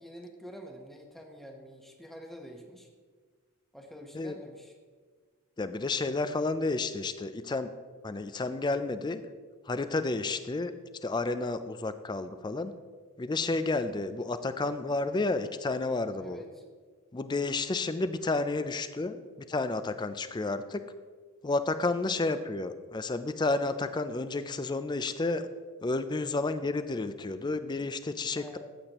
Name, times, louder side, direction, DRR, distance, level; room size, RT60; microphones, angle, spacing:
voice 1, 0.0-2.9 3.7-4.7 16.2-16.6 22.0-22.2 28.4-28.6, equal, ahead, 2 dB, 0.9 m, -47 dB
voice 2, 5.6-7.7 8.0-9.2 9.7-10.7 11.0-12.7 13.2-16.4 17.1-20.8 21.4-25.5 25.8-28.6, left 3 dB, 20° left, 11 dB, 0.4 m, -31 dB
14.0 x 8.2 x 3.0 m, 1.5 s
head